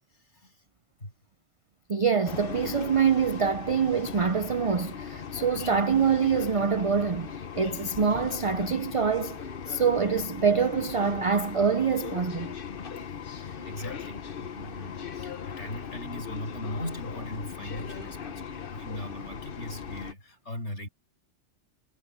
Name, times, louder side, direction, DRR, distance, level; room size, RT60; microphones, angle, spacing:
voice 1, 0.1-0.6 1.0-1.1 13.3-20.9, left 1 dB, 70° left, 8.5 m, -39 dB
voice 2, 1.9-9.4 9.7-12.5, right 6 dB, 45° right, 0.4 m, -25 dB
sound 1, 2.2-20.1, left 7 dB, 50° left, 1.1 m, -38 dB
omnidirectional pair, 1.2 m